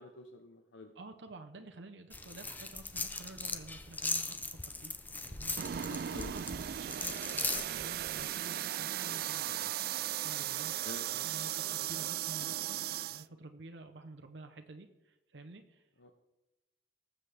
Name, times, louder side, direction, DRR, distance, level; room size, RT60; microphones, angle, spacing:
voice 1, 0.0-0.9 5.6-6.3 7.4-7.6 10.8-11.1 16.0-16.1, left 2 dB, 80° left, 5 dB, 0.8 m, -49 dB
voice 2, 0.9-4.3 4.6-4.9 5.2-5.5 6.1-9.8 10.2-10.7 11.1-12.8 13.1-15.9, right 2 dB, 75° right, 4 dB, 0.8 m, -50 dB
sound 1, 2.1-8.3, left 3 dB, 10° left, 0.6 m, -39 dB
sound 2, 5.6-13.3, right 12 dB, 55° right, 0.3 m, -37 dB
19.5 x 7.4 x 3.4 m, 1.0 s
head